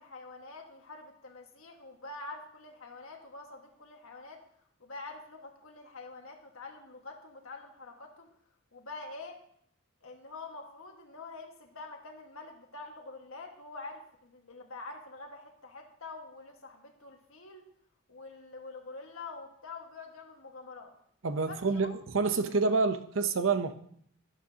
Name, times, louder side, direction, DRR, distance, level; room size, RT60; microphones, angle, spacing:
voice 1, 0.0-4.4 4.8-8.3 8.7-9.4 10.0-17.6 18.1-20.9 21.5-21.9, left 3 dB, 80° left, 2 dB, 1.7 m, -46 dB
voice 2, 21.2-23.7, right 4 dB, 70° right, 9 dB, 0.8 m, -28 dB
11.5 x 11.5 x 2.9 m, 0.67 s
head